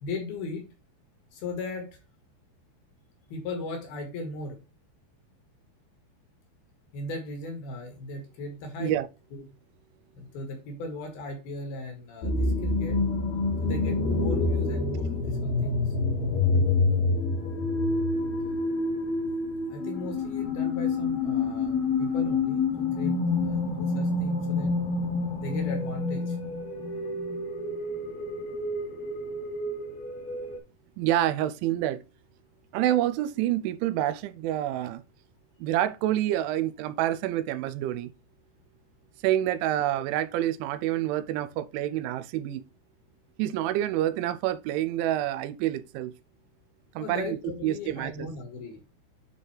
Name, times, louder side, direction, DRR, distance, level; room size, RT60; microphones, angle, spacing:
voice 1, 0.0-0.6 1.3-2.0 3.3-4.6 6.9-9.0 9.3-9.5 10.1-13.0 13.6-15.9 19.7-23.1 23.4-24.7 25.4-26.4 47.0-48.8, left 2 dB, 60° left, 3.2 m, -37 dB
sound 1, 12.2-30.6, left 3 dB, 85° left, 1.5 m, -28 dB
voice 2, 31.0-32.0 32.7-35.0 35.6-38.1 39.2-42.6 43.4-46.1 47.0-47.4 47.6-48.3, right 13 dB, 85° right, 2.9 m, -27 dB
10.5 x 3.9 x 3.3 m
omnidirectional pair, 5.4 m